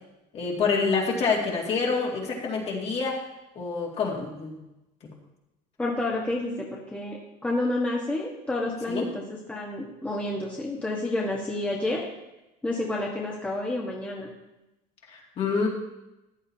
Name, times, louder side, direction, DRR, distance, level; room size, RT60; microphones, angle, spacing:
voice 1, 0.3-3.2 3.6-4.6 5.0-5.1 8.9-9.1 15.1-15.7, left 4 dB, 40° left, -1 dB, 2.4 m, -27 dB
voice 2, 5.8-9.2 9.5-12.0 12.6-14.3, left 2 dB, 10° left, -3 dB, 1.4 m, -29 dB
14.5 x 10.0 x 2.9 m, 0.95 s
cardioid pair, 150°, 16 cm